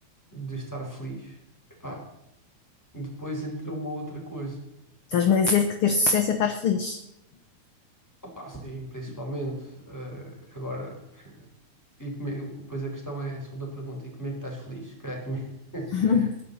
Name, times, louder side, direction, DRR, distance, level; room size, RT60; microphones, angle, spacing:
voice 1, 0.3-1.4 1.8-2.1 2.9-4.7 8.2-11.5 12.0-16.3, right 1 dB, 5° left, -1 dB, 4.9 m, -36 dB
voice 2, 5.1-7.0 15.9-16.4, left 5 dB, 60° left, 7 dB, 1.6 m, -22 dB
21.5 x 10.5 x 4.3 m, 0.85 s
omnidirectional pair, 3.3 m